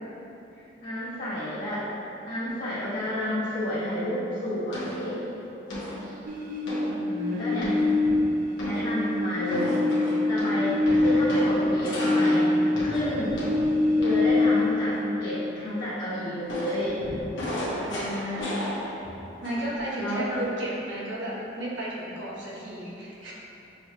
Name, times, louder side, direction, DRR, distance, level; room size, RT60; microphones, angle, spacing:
voice 1, 0.5-1.8 2.3-5.2 7.4-7.7 8.6-9.9 10.3-12.5 12.8-13.4 13.9-17.0 20.0-20.4, equal, 55° left, -14 dB, 1.1 m, -30 dB
sound 1, 4.7-5.1 5.7-6.1 6.7-6.9 7.6-8.2 8.6-9.0 9.5-14.4 16.5-19.2 19.4-19.8, equal, 90° left, 0.9 m, -33 dB
sound 2, 6.3-8.8 9.1-13.0 13.3-15.0, left 2 dB, 45° right, 0.4 m, -24 dB
voice 2, 6.8-7.9 17.8-18.4 18.7-18.9 19.4-23.3, right 1 dB, 85° right, -6 dB, 0.9 m, -33 dB
6.1 x 3.0 x 2.2 m, 3.0 s
head